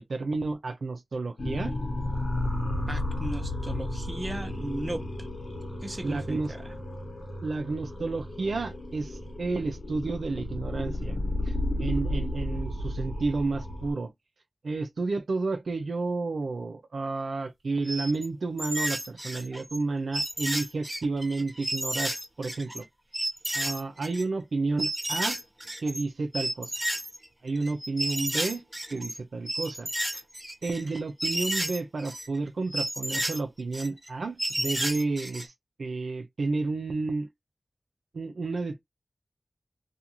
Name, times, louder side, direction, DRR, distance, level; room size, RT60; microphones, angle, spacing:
voice 1, 0.0-1.8 6.0-6.5 7.4-11.2 11.5-14.1 14.6-22.9 23.5-25.4 25.8-26.7 27.4-28.6 28.9-30.2 30.6-35.5 35.8-37.3 38.1-38.8, right 3 dB, 85° right, 0.4 m, -31 dB
sound 1, 1.4-13.9, left 1 dB, 80° left, 1.1 m, -33 dB
voice 2, 2.9-5.1 5.8-6.7, right 1 dB, 35° right, 0.7 m, -36 dB
sound 2, 17.8-18.3 18.6-19.8 20.1-22.8 23.1-24.2 24.8-26.0 26.3-29.2 29.5-32.3 32.7-34.1 34.4-35.5, right 1 dB, 20° right, 1.1 m, -32 dB
2.5 x 2.3 x 2.9 m
cardioid pair, 40°, 0 cm